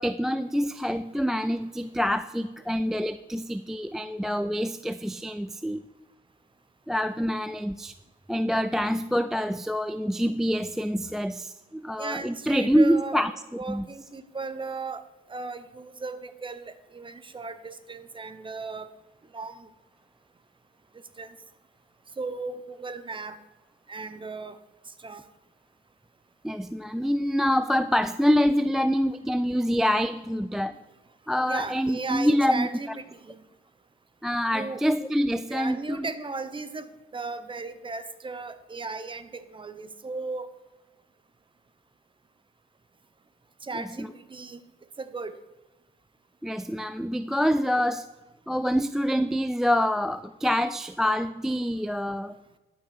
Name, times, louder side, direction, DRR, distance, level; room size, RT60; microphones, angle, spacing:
voice 1, 0.0-5.8 6.9-7.9 8.3-13.3 13.7-13.9 26.4-30.8 31.3-32.7 34.2-36.1 43.7-44.1 46.4-48.1 48.5-52.4, equal, ahead, 12 dB, 0.3 m, -26 dB
voice 2, 12.0-13.2 13.6-15.0 15.3-18.9 19.3-19.7 21.2-21.4 22.2-23.4 23.9-24.6 24.9-25.3 31.4-33.4 34.5-34.8 35.5-40.5 43.6-44.6 45.0-45.4, right 3 dB, 25° right, 12 dB, 1.0 m, -36 dB
12.0 x 6.2 x 6.5 m, 1.1 s
cardioid pair, 90°, 20 cm